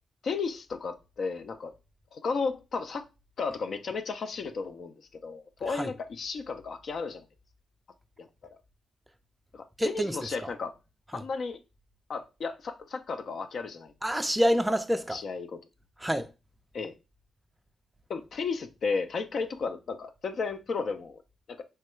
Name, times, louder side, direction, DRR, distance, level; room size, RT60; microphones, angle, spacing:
voice 1, 0.2-1.7 2.1-3.1 3.4-7.2 8.2-8.3 9.5-10.7 11.1-11.6 12.1-13.9 15.1-15.6 16.7-16.9 18.1-21.2 21.5-21.6, left 4 dB, 60° left, 0.4 m, -34 dB
voice 2, 9.8-10.2 11.1-11.2 14.0-15.2 16.0-16.3, equal, 5° right, 0.3 m, -27 dB
3.2 x 2.3 x 3.0 m
cardioid pair, 95°, 0 cm